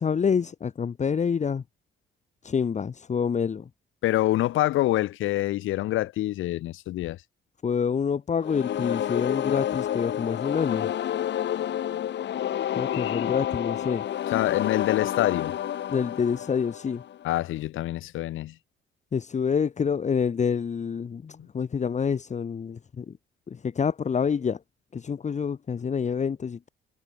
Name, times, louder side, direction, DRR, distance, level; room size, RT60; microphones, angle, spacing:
voice 1, 0.0-1.6 2.4-3.7 7.6-10.9 12.7-14.0 15.9-17.0 19.1-23.1 23.5-24.6 24.9-26.7, left 6 dB, 35° left, 1.1 m, -27 dB
voice 2, 4.0-7.2 12.9-13.2 14.3-15.5 17.2-18.5, left 15 dB, 85° left, 1.1 m, -26 dB
sound 1, 8.4-17.3, left 11 dB, 60° left, 1.3 m, -29 dB
cardioid pair, 90°, 20 cm